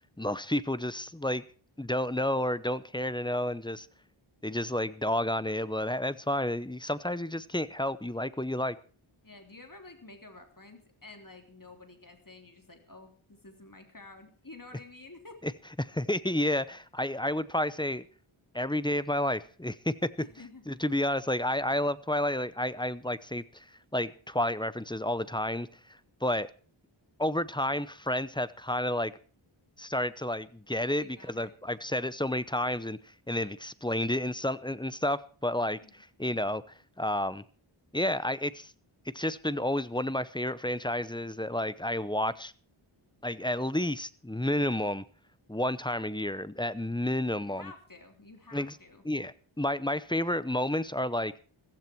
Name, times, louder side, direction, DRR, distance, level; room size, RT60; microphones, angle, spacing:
voice 1, 0.2-1.4 1.8-3.9 4.4-8.8 15.4-15.5 15.8-18.1 18.5-20.1 20.7-25.7 26.2-26.5 27.2-29.1 29.8-36.6 37.0-37.4 37.9-38.7 39.1-42.5 43.2-45.0 45.5-47.7 48.5-48.8 49.0-51.3, left 1 dB, 10° left, 16 dB, 0.8 m, -30 dB
voice 2, 9.2-15.4 20.2-20.8 31.0-31.5 35.8-36.0 47.4-49.0, left 3 dB, 40° left, 5 dB, 3.4 m, -50 dB
15.0 x 15.0 x 4.5 m, 0.39 s
wide cardioid pair, 65°, 49 cm